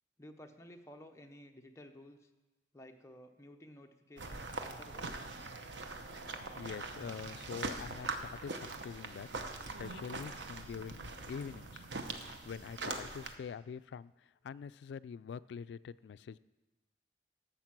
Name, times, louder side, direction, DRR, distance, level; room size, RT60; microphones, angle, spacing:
voice 1, 0.2-2.3 2.7-5.1, left 1 dB, 15° left, 4 dB, 0.7 m, -54 dB
sound 1, 4.2-13.4, right 3 dB, 90° right, 0.9 m, -42 dB
voice 2, 6.2-9.3 9.8-11.9 12.4-16.4, left 6 dB, 80° left, 17 dB, 0.3 m, -45 dB
12.0 x 7.3 x 5.9 m, 1.1 s
head